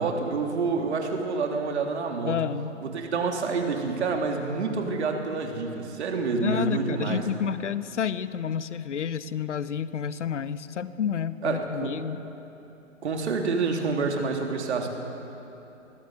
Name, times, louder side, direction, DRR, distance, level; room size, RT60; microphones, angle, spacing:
voice 1, 0.0-2.4 2.8-7.2 11.4-11.9 13.0-14.9, right 4 dB, 60° right, 2 dB, 3.2 m, -28 dB
voice 2, 2.2-2.7 6.4-12.2, left 8 dB, 65° left, 15 dB, 1.0 m, -30 dB
22.5 x 16.0 x 8.0 m, 3.0 s
figure-of-eight pair, 130°, 38 cm